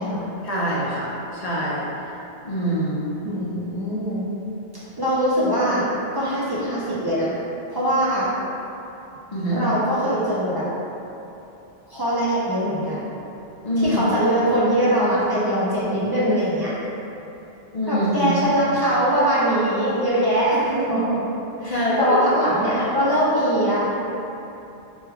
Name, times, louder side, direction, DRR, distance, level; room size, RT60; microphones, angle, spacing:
voice 1, 0.4-1.9 2.4-3.1 9.3-9.6 13.6-14.0 17.7-18.4 21.7-22.2 22.7-22.9, equal, 50° left, -7 dB, 0.6 m, -24 dB
voice 2, 3.2-4.2 5.0-5.8 6.1-7.3 7.7-8.3 9.5-10.7 11.9-13.1 13.8-16.7 17.9-21.2 21.6-24.0, equal, 35° right, -9 dB, 0.4 m, -22 dB
3.1 x 2.2 x 3.3 m, 2.9 s
omnidirectional pair, 1.0 m